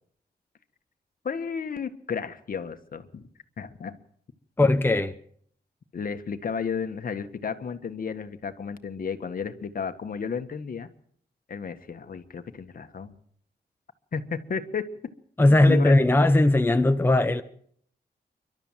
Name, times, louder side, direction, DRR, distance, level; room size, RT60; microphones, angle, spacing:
voice 1, 1.2-3.3 3.6-4.0 5.9-10.9 11.5-13.1 14.1-14.8 15.7-15.9, left 6 dB, 55° left, 1.7 m, -33 dB
voice 2, 4.6-5.1 15.4-17.4, left 2 dB, 10° left, 0.9 m, -19 dB
29.0 x 12.5 x 7.5 m
wide cardioid pair, 105°, 17 cm